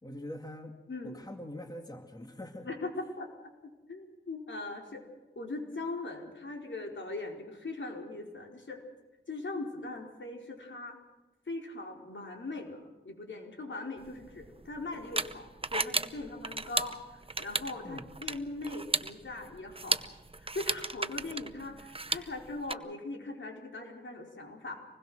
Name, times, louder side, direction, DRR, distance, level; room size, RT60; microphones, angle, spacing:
voice 1, 0.0-0.8 1.0-2.7 17.8-18.1, left 1 dB, 20° left, 4 dB, 2.2 m, -43 dB
voice 2, 0.9-1.2 2.6-3.3 3.9-5.0 5.3-8.8 9.3-11.0 11.5-20.0 20.4-24.7, left 2 dB, 75° left, 1 dB, 4.8 m, -40 dB
sound 1, 14.0-22.7, right 3 dB, 30° right, 0.9 m, -35 dB
26.0 x 20.5 x 6.4 m, 1.2 s
wide cardioid pair, 75°, 20 cm